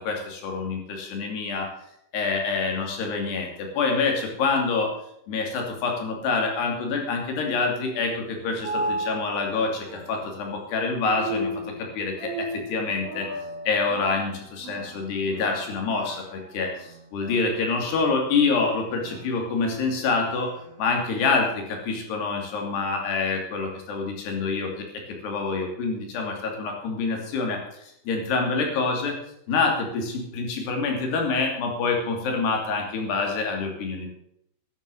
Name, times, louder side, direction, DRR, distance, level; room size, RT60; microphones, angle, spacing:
voice 1, 0.0-1.7 2.1-4.9 5.3-13.3 13.7-20.5 20.8-29.2 29.5-34.1, left 4 dB, 65° left, 2 dB, 4.7 m, -26 dB
sound 1, 8.2-21.0, right 1 dB, 50° right, 1.9 m, -36 dB
12.0 x 11.5 x 6.9 m, 0.74 s
omnidirectional pair, 5.3 m